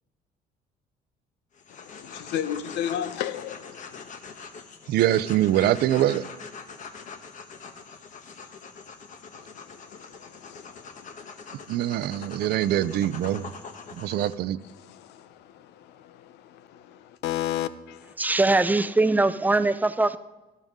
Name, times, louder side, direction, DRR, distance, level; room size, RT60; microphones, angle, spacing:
sound 1, 1.5-14.3, left 5 dB, 50° left, 1.2 m, -43 dB
voice 1, 1.7-4.2 9.3-11.3 13.8-13.9 14.8-18.1, left 11 dB, 85° left, 0.7 m, -35 dB
voice 2, 4.9-6.3 11.7-13.5 13.9-14.6, right 13 dB, 70° right, 0.6 m, -24 dB
voice 3, 18.2-20.2, right 2 dB, 10° right, 0.5 m, -21 dB
13.0 x 12.0 x 3.7 m
cardioid pair, 110°, 17 cm